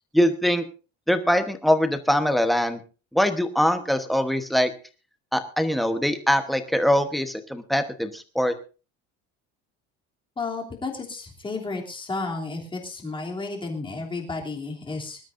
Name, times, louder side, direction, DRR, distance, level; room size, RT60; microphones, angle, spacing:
voice 1, 0.1-0.6 1.1-2.8 3.1-4.7 5.3-8.5, equal, ahead, 7 dB, 1.1 m, -22 dB
voice 2, 10.4-15.2, left 3 dB, 15° left, 0 dB, 3.1 m, -32 dB
25.0 x 12.5 x 2.6 m, 0.35 s
cardioid pair, 155°, 31 cm